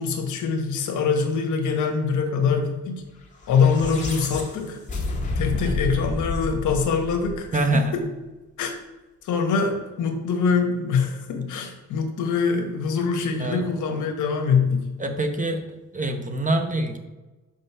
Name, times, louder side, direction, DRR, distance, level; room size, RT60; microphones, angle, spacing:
voice 1, 0.0-3.0 3.5-4.8 5.4-7.6 8.6-8.7 9.2-14.9, left 5 dB, 80° left, 4 dB, 1.3 m, -24 dB
sound 1, 3.3-7.8, left 2 dB, 25° left, 1.8 m, -30 dB
voice 2, 7.5-7.9 13.4-13.6 15.0-17.0, right 2 dB, 25° right, 5 dB, 1.0 m, -25 dB
5.4 x 5.1 x 5.6 m, 1.1 s
cardioid pair, 90°, 30 cm